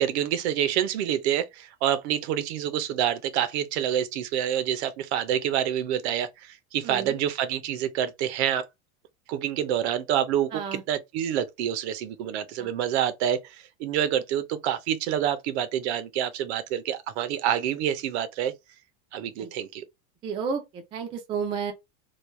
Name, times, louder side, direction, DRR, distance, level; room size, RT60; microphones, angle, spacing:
voice 1, 0.0-8.6 9.3-18.5 19.1-19.8, right 10 dB, 70° right, 0.7 m, -27 dB
voice 2, 6.8-7.2 10.5-10.8 12.6-12.7 19.4-19.5 20.2-21.7, right 6 dB, 15° right, 0.3 m, -31 dB
3.2 x 2.2 x 3.1 m
supercardioid pair, 165°, 34 cm